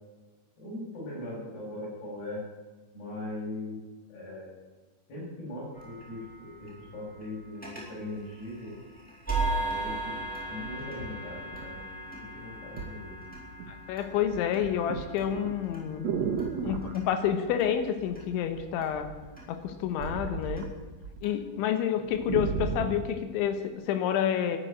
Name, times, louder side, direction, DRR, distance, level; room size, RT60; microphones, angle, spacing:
voice 1, 0.6-2.4 2.9-3.8 4.1-4.6 5.1-8.7 9.4-13.2, left 2 dB, 60° left, -4 dB, 8.1 m, -40 dB
sound 1, 5.7-21.3, right 2 dB, ahead, 3.3 m, -39 dB
sound 2, 10.0-10.1 10.6-12.1 12.8-13.0 13.3-13.8 14.1-17.0 18.1-18.6 18.9-21.2 21.5-21.6 21.9-23.1 23.7-23.8, right 6 dB, 80° right, 1.5 m, -34 dB
voice 2, 13.7-16.1 16.6-19.1 19.5-20.7 21.2-24.6, left 9 dB, 90° left, 8 dB, 3.5 m, -29 dB
13.0 x 10.5 x 8.9 m, 1.3 s
omnidirectional pair, 5.3 m